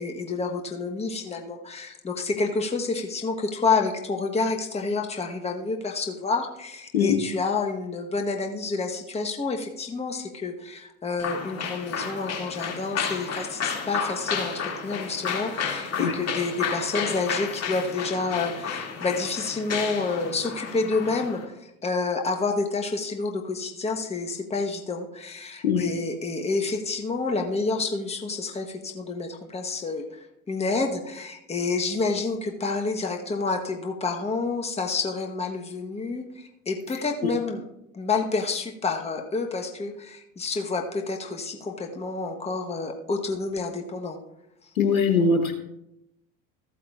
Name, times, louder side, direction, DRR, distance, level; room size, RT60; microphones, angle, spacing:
voice 1, 0.0-37.6 37.9-44.2, left 4 dB, 15° left, 3 dB, 1.0 m, -29 dB
sound 1, 11.2-21.5, left 6 dB, 35° left, 2.2 m, -32 dB
voice 2, 44.7-45.5, left 5 dB, 80° left, 4 dB, 1.1 m, -21 dB
14.5 x 8.4 x 2.4 m, 0.84 s
hypercardioid pair, 75°, 42 cm